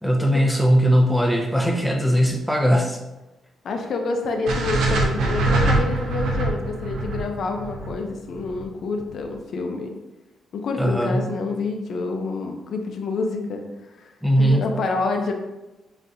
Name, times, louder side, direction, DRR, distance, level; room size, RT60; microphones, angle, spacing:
voice 1, 0.0-3.0 10.8-11.3 14.2-14.7, equal, ahead, 3 dB, 0.4 m, -19 dB
voice 2, 3.6-10.0 10.5-13.6 14.0-15.3, left 3 dB, 55° left, 3 dB, 0.5 m, -28 dB
sound 1, 4.5-8.6, right 2 dB, 75° right, 0.7 m, -23 dB
5.9 x 2.8 x 2.6 m, 1.0 s
cardioid pair, 155°, 0 cm